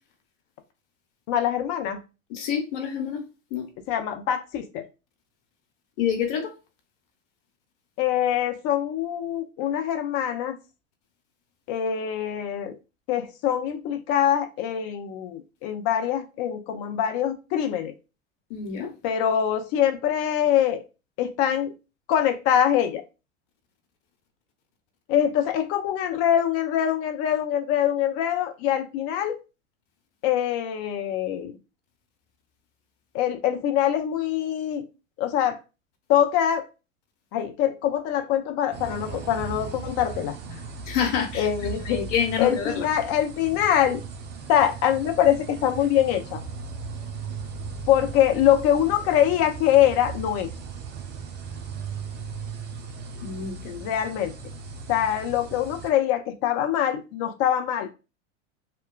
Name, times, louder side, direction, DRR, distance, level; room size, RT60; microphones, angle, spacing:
voice 1, 1.3-2.0 3.9-4.9 8.0-10.6 11.7-12.8 13.1-17.9 19.0-20.9 21.2-21.7 22.1-23.0 25.1-29.4 30.2-31.6 33.1-34.8 35.2-35.6 36.1-36.7 37.3-40.6 41.3-42.0 42.4-44.0 44.5-46.4 47.9-50.5 53.8-54.3 54.9-57.9, left 10 dB, 40° left, 0.5 m, -24 dB
voice 2, 2.3-3.2 3.5-3.7 6.0-6.5 18.5-18.9 40.8-41.5 41.8-42.9 53.2-53.9, left 8 dB, 65° left, 0.9 m, -27 dB
sound 1, 38.7-55.9, right 5 dB, 30° right, 0.5 m, -37 dB
2.8 x 2.2 x 2.3 m
hypercardioid pair, 95°, 38 cm